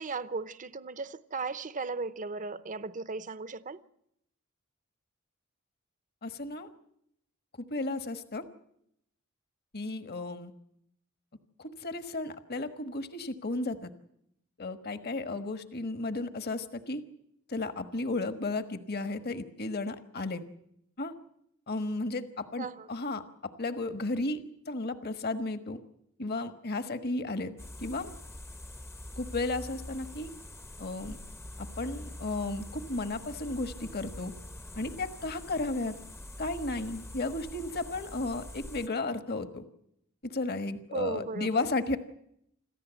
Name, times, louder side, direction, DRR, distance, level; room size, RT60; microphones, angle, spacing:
voice 1, 0.0-3.8 22.6-22.9 40.9-41.7, right 3 dB, 40° right, 0.8 m, -36 dB
voice 2, 6.2-6.7 7.7-8.4 9.7-10.5 11.6-13.9 14.6-17.0 17.5-20.4 21.0-21.1 21.7-24.4 24.7-25.8 26.2-27.5 27.8-28.1 29.2-30.3 30.8-31.2 31.6-34.3 34.7-35.9 36.4-39.6 40.2-42.0, left 2 dB, 50° left, 1.4 m, -34 dB
sound 1, 27.6-38.9, left 1 dB, 10° left, 0.8 m, -45 dB
27.0 x 14.5 x 8.2 m
head